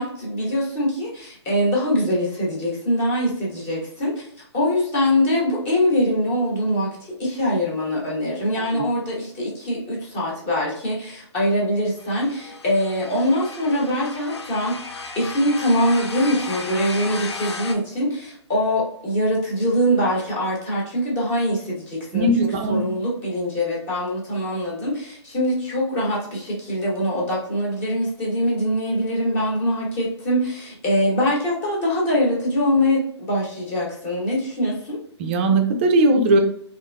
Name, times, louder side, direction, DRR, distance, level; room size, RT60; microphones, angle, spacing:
voice 1, 0.0-4.1 4.5-6.9 7.2-14.7 15.2-35.0, equal, 25° left, -4 dB, 1.0 m, -23 dB
voice 2, 8.5-8.8 22.1-22.8 35.2-36.4, right 2 dB, 25° right, 4 dB, 0.3 m, -19 dB
sound 1, 12.0-17.7, left 4 dB, 70° left, 0.5 m, -34 dB
2.6 x 2.5 x 2.2 m, 0.66 s
figure-of-eight pair, 140°, 15 cm